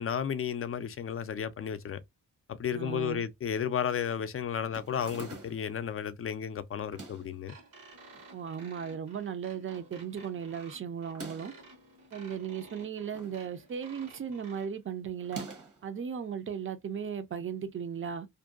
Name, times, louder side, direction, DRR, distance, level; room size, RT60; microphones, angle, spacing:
voice 1, 0.0-2.0 2.5-7.6, left 8 dB, 45° left, 0.4 m, -33 dB
voice 2, 2.7-3.2 8.3-11.5 12.1-15.5 15.8-18.3, right 7 dB, 40° right, 0.5 m, -36 dB
sound 1, 4.7-5.8 6.8-7.4 8.1-8.8 9.2-9.3 9.4-9.5 11.0-11.6 12.7-13.4 13.7-14.1 15.2-15.9, right 3 dB, 65° right, 1.1 m, -46 dB
sound 2, 7.5-14.7, right 2 dB, 85° right, 1.2 m, -53 dB
2.6 x 2.2 x 2.3 m
cardioid pair, 75°, 33 cm